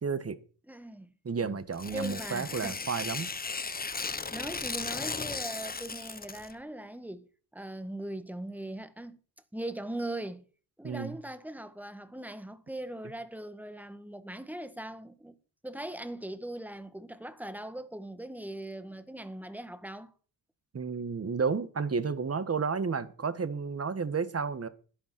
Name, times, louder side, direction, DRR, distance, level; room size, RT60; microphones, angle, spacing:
voice 1, 0.0-0.4 1.2-3.3 10.8-11.2 20.7-24.7, right 5 dB, 35° right, 1.7 m, -31 dB
voice 2, 0.7-1.1 1.4-1.6 1.9-3.3 4.3-7.3 7.5-9.2 9.5-10.4 10.8-15.4 15.6-20.1, right 1 dB, 5° right, 1.8 m, -40 dB
Tearing, 1.7-6.5, left 4 dB, 20° left, 1.0 m, -36 dB
11.0 x 10.5 x 6.1 m
cardioid pair, 80°, 43 cm